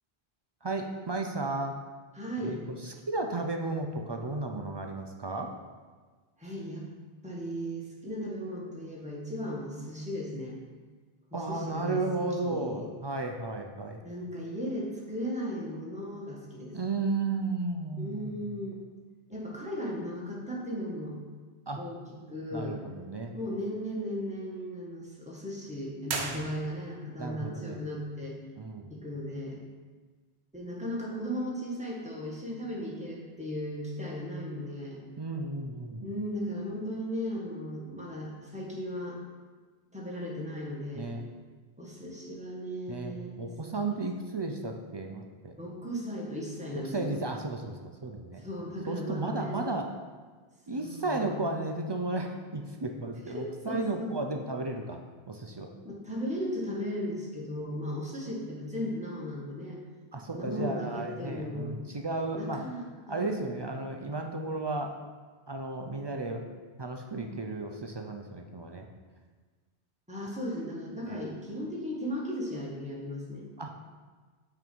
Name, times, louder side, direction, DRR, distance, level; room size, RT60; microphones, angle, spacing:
voice 1, 0.6-1.7 2.4-5.5 11.3-14.0 16.7-18.5 21.7-21.8 22.5-23.3 26.2-26.4 27.2-27.8 28.6-28.9 35.2-36.1 40.9-41.2 42.9-45.5 46.8-48.4 48.9-49.9 50.7-55.0 55.3-55.7 60.1-62.6 63.1-64.9 65.5-66.4 66.8-68.9 71.1-71.2 73.6-73.7, right 2 dB, 40° right, 3 dB, 0.3 m, -34 dB
voice 2, 2.1-2.6 6.4-6.9 7.2-10.6 11.3-12.0 12.4-12.9 14.0-16.7 18.0-18.7 19.3-21.1 21.8-22.8 23.3-28.4 28.9-29.6 30.5-35.0 36.0-39.2 39.9-41.1 41.8-43.5 43.8-43.9 45.6-47.2 48.4-49.7 50.7-51.3 53.3-54.1 55.8-59.8 60.3-61.8 62.3-63.6 70.1-73.4, equal, 5° right, -4 dB, 1.3 m, -36 dB
sound 1, 26.0-27.1, right 4 dB, 80° right, 1.1 m, -36 dB
5.9 x 4.6 x 5.3 m, 1.4 s
omnidirectional pair, 1.1 m